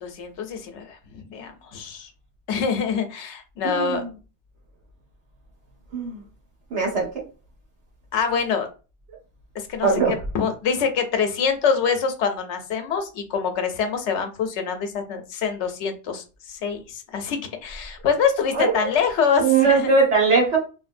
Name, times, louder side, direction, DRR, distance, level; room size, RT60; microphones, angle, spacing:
voice 1, 0.0-2.1 2.5-4.0 8.1-8.7 9.5-9.9 10.3-19.9, left 6 dB, 80° left, 7 dB, 0.9 m, -25 dB
voice 2, 3.6-4.1 5.9-6.2 6.7-7.1 9.8-10.1 18.5-18.9 19.4-20.6, right 4 dB, 75° right, -1 dB, 1.3 m, -20 dB
3.1 x 2.6 x 2.5 m, 0.33 s
omnidirectional pair, 1.2 m